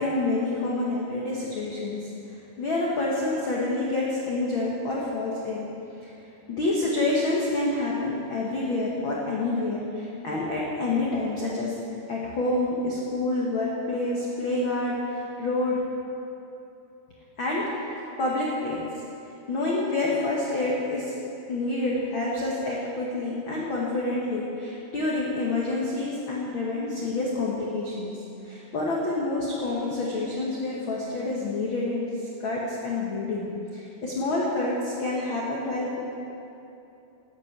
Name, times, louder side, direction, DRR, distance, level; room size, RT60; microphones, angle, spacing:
voice 1, 0.0-2.1 2.6-5.7 6.0-6.1 6.5-11.8 12.1-15.8 17.4-17.6 18.2-18.8 19.5-21.1 21.5-32.0 32.4-36.1, left 2 dB, 65° left, -4 dB, 1.2 m, -28 dB
12.5 x 8.3 x 8.1 m, 2.8 s
omnidirectional pair, 4.6 m